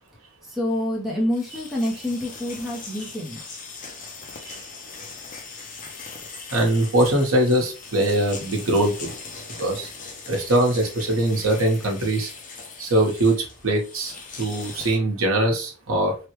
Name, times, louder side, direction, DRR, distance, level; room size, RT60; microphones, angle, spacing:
voice 1, 0.5-3.4, left 1 dB, ahead, -3 dB, 0.7 m, -27 dB
sound 1, 1.3-15.0, left 4 dB, 40° left, 0.5 m, -40 dB
voice 2, 6.5-9.1 9.6-9.9 10.3-12.3 12.8-16.2, right 1 dB, 75° right, 1 dB, 1.0 m, -22 dB
3.3 x 2.2 x 3.0 m, 0.33 s
head